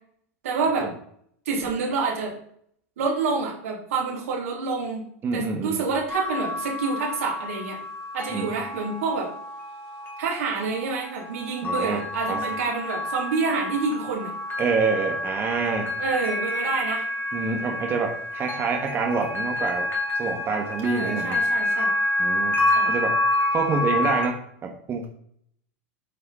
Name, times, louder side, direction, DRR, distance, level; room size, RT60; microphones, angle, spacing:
voice 1, 0.4-0.9 1.4-2.3 3.0-5.0 5.3-7.8 8.1-9.3 10.2-14.3 16.0-17.1 20.8-21.9 22.7-22.9, right 4 dB, 80° right, -2 dB, 3.2 m, -27 dB
voice 2, 5.2-5.8 8.3-8.5 11.6-12.0 12.3-12.4 14.6-15.9 17.3-19.9 20.2-21.4 22.2-23.2 23.5-25.1, right 5 dB, 30° right, 2 dB, 1.2 m, -27 dB
sound 1, 6.1-24.3, left 1 dB, 25° left, 2.4 m, -28 dB
8.7 x 4.7 x 4.3 m, 0.66 s
hypercardioid pair, 105°, 7 cm